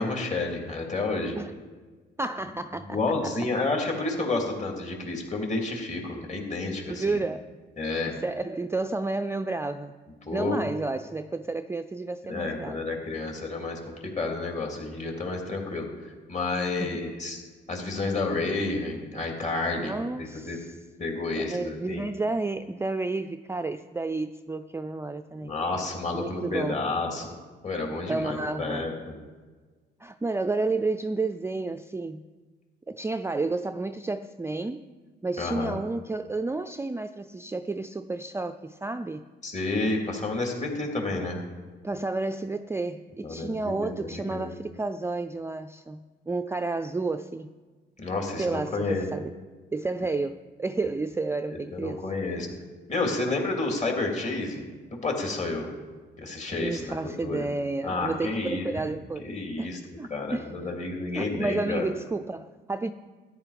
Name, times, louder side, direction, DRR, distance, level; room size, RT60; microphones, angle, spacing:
voice 1, 0.0-1.4 2.8-7.2 7.8-8.1 10.2-10.6 12.3-17.4 17.7-20.6 21.0-22.1 25.4-27.4 27.6-29.1 35.4-35.7 39.4-41.4 43.2-44.5 48.0-49.1 51.5-52.5 52.9-54.6 55.0-55.7 56.2-57.5 57.8-58.6 59.2-59.8 60.1-61.8, left 3 dB, 35° left, 1 dB, 3.3 m, -30 dB
voice 2, 2.2-3.3 7.0-7.5 8.1-9.9 10.3-12.8 16.8-17.0 19.8-20.8 21.3-25.5 26.1-26.8 28.1-28.9 30.0-32.3 32.9-34.9 35.2-39.3 41.8-47.5 48.4-49.3 49.7-52.0 56.5-60.6 61.1-62.9, right 3 dB, 15° right, 9 dB, 0.4 m, -31 dB
13.5 x 10.5 x 5.1 m, 1.4 s
cardioid pair, 90°, 20 cm